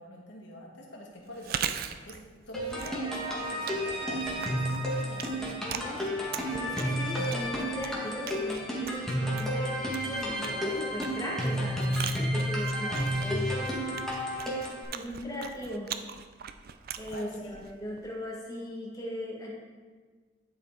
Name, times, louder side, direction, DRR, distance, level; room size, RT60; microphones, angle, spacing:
voice 1, 0.0-6.1 12.5-13.0 17.1-17.7, equal, 85° left, -2 dB, 1.7 m, -45 dB
Chewing mastication, 1.3-18.2, right 8 dB, 55° right, 0.4 m, -41 dB
sound 1, 2.5-14.8, equal, 5° left, 1.6 m, -31 dB
voice 2, 5.6-6.1 6.5-12.9 13.2-13.9 14.9-15.9 17.0-19.5, equal, 20° left, -4 dB, 1.8 m, -38 dB
11.0 x 4.8 x 3.8 m, 1.5 s
head